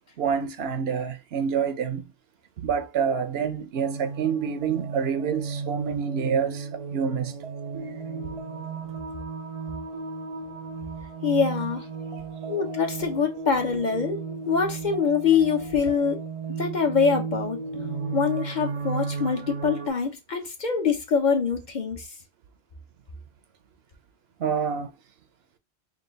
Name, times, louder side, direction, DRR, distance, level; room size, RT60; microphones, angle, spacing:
voice 1, 0.2-2.1 2.6-7.4 24.4-24.9, right 7 dB, 75° right, 0.9 m, -27 dB
sound 1, 3.7-19.9, right 4 dB, 40° right, 0.6 m, -34 dB
voice 2, 11.2-11.9 12.5-14.2 14.5-16.2 16.6-17.6 18.1-22.1, left 5 dB, 50° left, 0.9 m, -24 dB
3.8 x 2.3 x 3.8 m
omnidirectional pair, 1.1 m